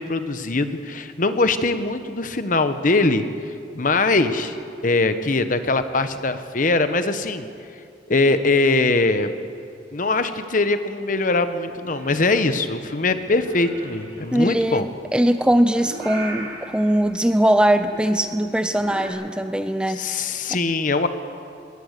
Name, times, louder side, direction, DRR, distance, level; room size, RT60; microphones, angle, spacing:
voice 1, 0.0-4.6 4.8-7.5 8.1-9.3 9.9-14.9 19.9-21.1, left 3 dB, 45° left, 10 dB, 1.0 m, -22 dB
Purr / Meow, 11.7-19.1, right 1 dB, 65° right, 6.3 m, -39 dB
voice 2, 14.3-20.2, right 1 dB, 5° right, 10 dB, 0.5 m, -21 dB
21.5 x 18.0 x 6.7 m, 2.4 s
head